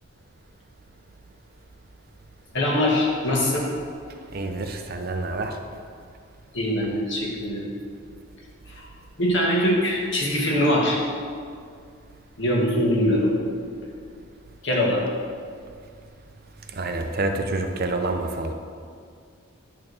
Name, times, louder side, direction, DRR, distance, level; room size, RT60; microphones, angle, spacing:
voice 1, 2.5-3.7 6.5-7.7 8.7-8.9 9.2-11.0 12.4-13.3 14.6-15.0, left 1 dB, 60° left, -3 dB, 1.7 m, -22 dB
voice 2, 4.3-5.6 16.7-18.5, right 2 dB, 45° right, 5 dB, 0.6 m, -27 dB
11.0 x 3.7 x 6.3 m, 2.2 s
head